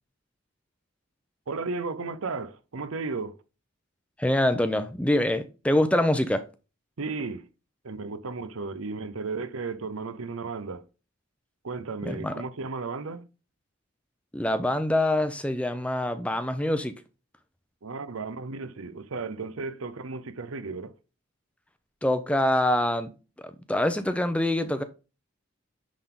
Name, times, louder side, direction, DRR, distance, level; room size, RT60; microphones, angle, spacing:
voice 1, 1.5-3.4 7.0-7.5 7.8-10.8 11.6-13.3 17.8-20.9, right 4 dB, 85° right, 0.7 m, -34 dB
voice 2, 4.2-6.4 12.0-12.3 14.3-16.9 22.0-23.1 23.7-24.8, left 1 dB, 5° left, 0.5 m, -25 dB
10.0 x 3.9 x 3.7 m
head